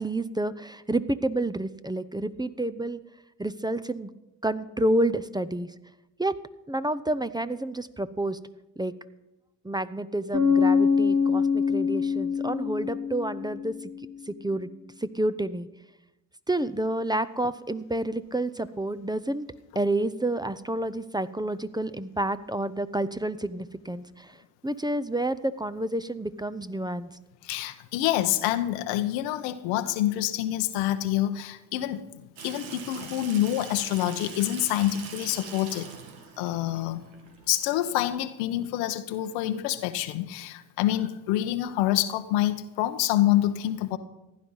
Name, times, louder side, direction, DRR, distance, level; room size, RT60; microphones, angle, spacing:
voice 1, 0.0-3.0 3.4-4.1 4.4-5.7 6.2-6.3 6.7-8.4 8.8-8.9 9.6-13.8 14.3-14.7 15.0-15.7 16.5-19.4 19.7-24.3 24.6-27.1, right 1 dB, 10° right, 13 dB, 0.7 m, -29 dB
Bass guitar, 10.3-14.0, left 5 dB, 30° right, 2.3 m, -24 dB
voice 2, 27.4-32.1 32.4-35.9 36.4-37.0 37.5-44.0, left 13 dB, 85° left, 11 dB, 0.9 m, -27 dB
Water tap faucet / Sink (filling or washing), 32.4-37.8, right 6 dB, 80° right, 1.9 m, -43 dB
15.5 x 10.5 x 5.5 m, 0.96 s
hypercardioid pair, 50°, 43 cm